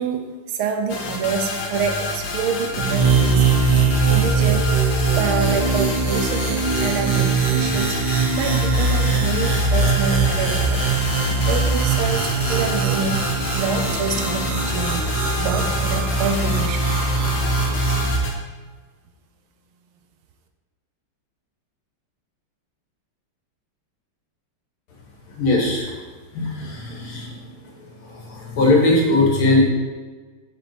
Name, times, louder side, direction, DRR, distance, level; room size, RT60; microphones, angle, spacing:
voice 1, 0.0-4.8 5.2-11.0 11.3-15.1 15.4-17.0, right 5 dB, 75° right, 5 dB, 1.7 m, -27 dB
sound 1, 0.9-18.3, left 2 dB, 60° left, 1.7 m, -29 dB
sound 2, 2.8-18.1, right 4 dB, 60° right, 1.3 m, -21 dB
sound 3, 9.0-17.9, equal, 20° right, 1.5 m, -36 dB
voice 2, 25.3-25.9 26.3-27.5 27.8-29.6, left 2 dB, 75° left, -2 dB, 2.7 m, -20 dB
7.0 x 6.1 x 5.0 m, 1.4 s
omnidirectional pair, 2.3 m